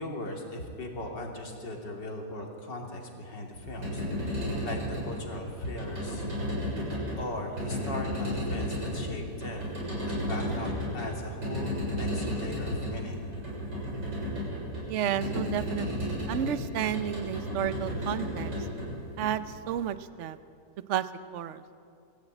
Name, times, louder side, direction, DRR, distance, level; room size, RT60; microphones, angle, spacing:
voice 1, 0.0-6.3 7.2-9.8 10.3-13.2, left 1 dB, 75° left, 0 dB, 3.6 m, -38 dB
sound 1, 3.6-19.8, equal, 75° right, 7.4 m, -33 dB
voice 2, 14.9-18.5 19.2-20.4 20.9-21.6, right 10 dB, 55° right, 12 dB, 0.9 m, -32 dB
21.0 x 16.0 x 9.0 m, 2.4 s
omnidirectional pair, 1.9 m